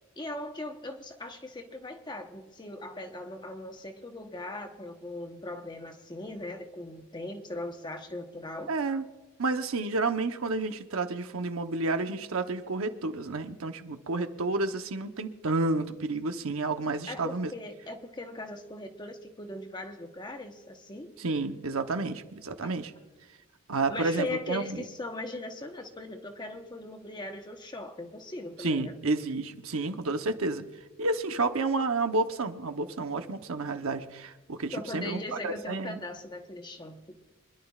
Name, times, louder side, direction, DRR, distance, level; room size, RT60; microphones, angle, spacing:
voice 1, 0.2-8.7 17.1-21.1 22.6-22.7 23.9-28.9 34.7-37.2, left 2 dB, 20° left, 5 dB, 1.0 m, -39 dB
voice 2, 8.7-9.1 9.4-17.5 21.2-22.9 23.7-24.8 28.6-30.7 31.0-36.0, right 3 dB, 75° right, 7 dB, 0.9 m, -30 dB
26.0 x 11.0 x 2.4 m, 1.2 s
head